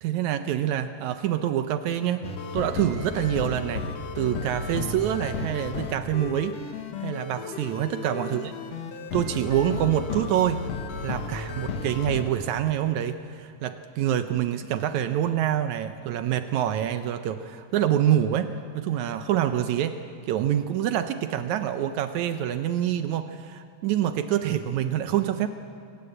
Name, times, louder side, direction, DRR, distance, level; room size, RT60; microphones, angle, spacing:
voice 1, 0.0-3.8 4.2-6.6 7.0-8.5 9.1-10.7 11.0-20.0 20.3-25.5, right 11 dB, 80° right, 9 dB, 2.1 m, -26 dB
sound 1, 2.2-12.2, left 4 dB, 65° left, 2.5 m, -34 dB
26.5 x 18.5 x 8.0 m, 2.3 s
omnidirectional pair, 3.4 m